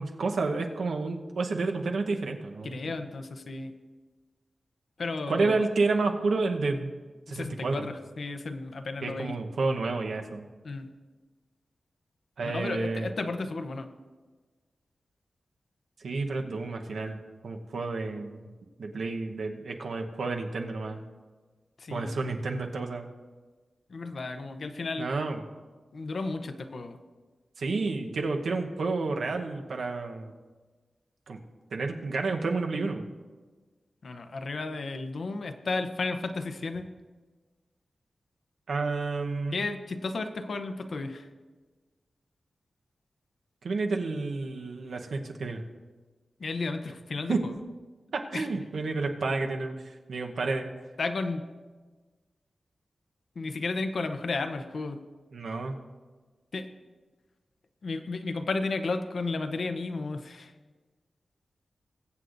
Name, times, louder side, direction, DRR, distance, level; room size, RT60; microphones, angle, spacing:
voice 1, 0.0-2.9 5.3-6.9 7.3-7.9 9.0-10.4 12.4-13.1 16.0-18.5 18.8-21.0 21.9-23.0 25.0-25.4 27.6-30.3 31.3-31.4 31.7-33.1 38.7-39.6 43.6-45.6 47.3-47.4 48.1-50.7 55.3-55.8, right 3 dB, 85° right, 3 dB, 0.9 m, -30 dB
voice 2, 2.6-3.7 5.0-5.6 7.3-9.3 10.6-10.9 12.4-13.9 21.8-22.2 23.9-25.1 25.9-27.0 34.0-36.9 39.5-41.3 46.4-47.5 48.3-48.5 51.0-51.5 53.4-55.0 56.5-56.7 57.8-60.5, left 3 dB, 60° left, 8 dB, 0.7 m, -33 dB
21.5 x 8.0 x 2.6 m, 1.4 s
wide cardioid pair, 120°, 0 cm